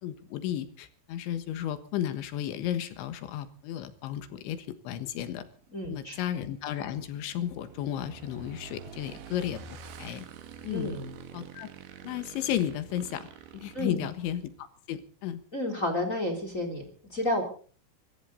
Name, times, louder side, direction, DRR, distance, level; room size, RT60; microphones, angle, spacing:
voice 1, 0.0-5.4 5.9-10.3 10.6-10.9 11.3-11.7 12.0-15.4, left 11 dB, 75° left, 10 dB, 3.6 m, -34 dB
Motorcycle / Engine, 5.0-14.6, right 7 dB, 70° right, 3.9 m, -48 dB
voice 2, 5.7-6.1 10.7-11.1 13.7-14.1 15.5-17.4, left 1 dB, 20° left, 5 dB, 3.0 m, -31 dB
24.0 x 14.5 x 4.1 m, 0.42 s
omnidirectional pair, 5.6 m